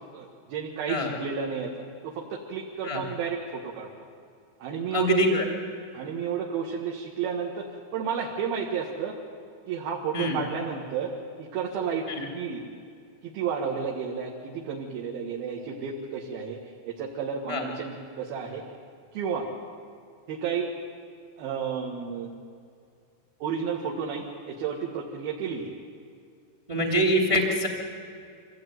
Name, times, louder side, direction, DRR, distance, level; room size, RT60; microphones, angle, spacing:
voice 1, 0.1-1.7 2.0-3.9 4.6-5.1 5.9-7.7 7.9-9.2 9.7-11.1 11.4-12.6 13.2-18.6 19.1-19.5 20.3-20.7 21.4-22.3 23.4-25.7, right 6 dB, 60° right, -2 dB, 3.1 m, -32 dB
voice 2, 4.9-5.4 10.1-10.3 12.2-12.3 17.5-17.7 26.7-27.7, equal, 20° right, 1 dB, 0.7 m, -24 dB
25.0 x 16.5 x 9.4 m, 2.3 s
omnidirectional pair, 5.4 m